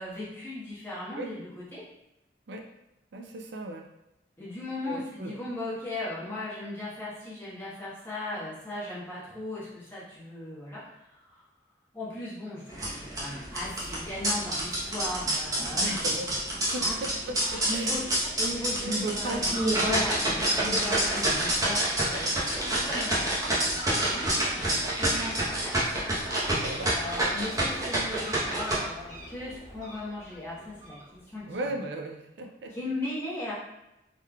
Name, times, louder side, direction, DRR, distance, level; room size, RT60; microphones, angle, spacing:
voice 1, 0.0-1.8 4.4-11.4 11.9-16.1 16.7-17.0 17.6-26.1 26.8-31.4 32.7-33.5, left 2 dB, 15° left, -9 dB, 1.1 m, -37 dB
voice 2, 3.1-3.9 4.8-5.4 15.6-18.0 18.8-19.5 19.8-20.0 20.6-20.8 26.5-27.0 31.4-32.7, right 1 dB, 70° right, 4 dB, 0.4 m, -36 dB
sound 1, 12.7-28.7, right 1 dB, 20° right, 0.8 m, -28 dB
Fowl, 18.5-31.5, equal, 45° right, 1.4 m, -44 dB
3.7 x 3.2 x 2.2 m, 0.92 s
head